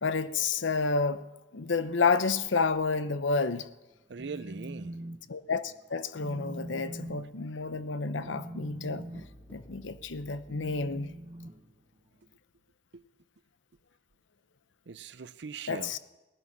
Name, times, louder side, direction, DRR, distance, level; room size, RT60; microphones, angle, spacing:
voice 1, 0.0-1.2 1.5-3.7 5.3-11.1 15.7-16.0, left 4 dB, 75° left, 0.8 m, -30 dB
Telephone, 4.0-5.2 5.5-5.8 6.2-12.3, right 1 dB, 30° right, 1.0 m, -44 dB
voice 2, 4.1-5.0 12.9-13.0 14.9-15.9, right 5 dB, 60° right, 0.6 m, -41 dB
sound 1, 7.8-12.2 12.5-12.6, left 1 dB, 10° left, 1.4 m, -57 dB
18.0 x 11.0 x 6.0 m
head